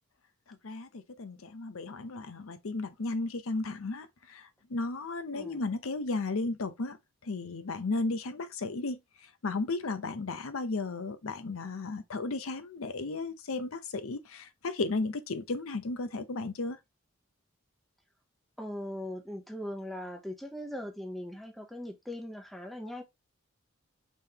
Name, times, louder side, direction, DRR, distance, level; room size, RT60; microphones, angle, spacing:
voice 1, 0.5-7.0 7.2-9.0 9.4-16.8, left 3 dB, 80° left, 0.7 m, -34 dB
voice 2, 18.6-23.0, left 1 dB, ahead, 0.7 m, -40 dB
5.3 x 3.5 x 2.8 m
head